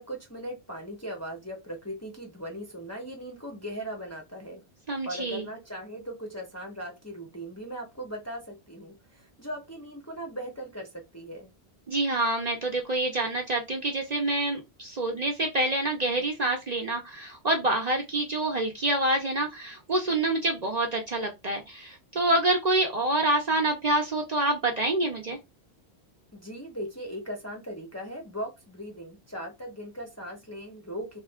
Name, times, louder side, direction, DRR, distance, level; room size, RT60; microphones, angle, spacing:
voice 1, 0.0-4.6 5.0-11.5 26.3-31.2, equal, 15° left, 0.7 m, -39 dB
voice 2, 4.9-5.4 11.9-25.4, right 2 dB, 45° right, 0.7 m, -27 dB
3.0 x 2.3 x 3.5 m
omnidirectional pair, 1.1 m